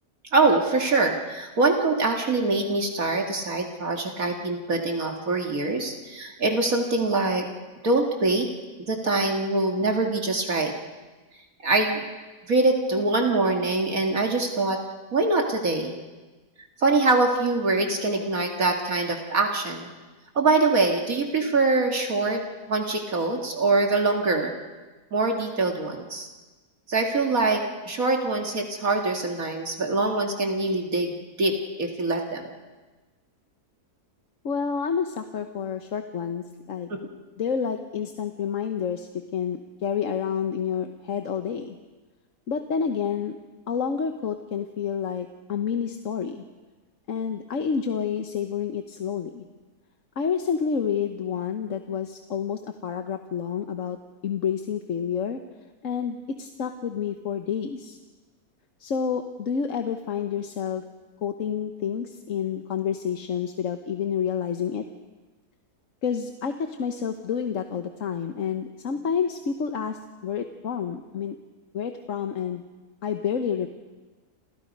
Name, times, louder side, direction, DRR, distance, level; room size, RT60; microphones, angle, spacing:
voice 1, 0.3-7.5 7.8-8.5 8.9-10.7 11.6-12.0 12.5-14.8 15.1-16.0 16.8-19.9 20.4-22.4 22.7-24.5 25.1-26.3 26.9-31.1 31.4-32.5 36.9-37.0, right 3 dB, 60° right, 3 dB, 2.4 m, -24 dB
voice 2, 34.4-36.9 37.4-41.8 42.5-43.4 43.7-46.4 47.1-49.4 50.2-54.0 54.2-55.4 55.8-58.0 58.8-60.8 61.2-64.8 66.0-71.4 71.7-72.6 73.0-73.7, left 7 dB, 55° left, 7 dB, 1.4 m, -29 dB
30.0 x 27.5 x 5.4 m, 1.3 s
omnidirectional pair, 1.6 m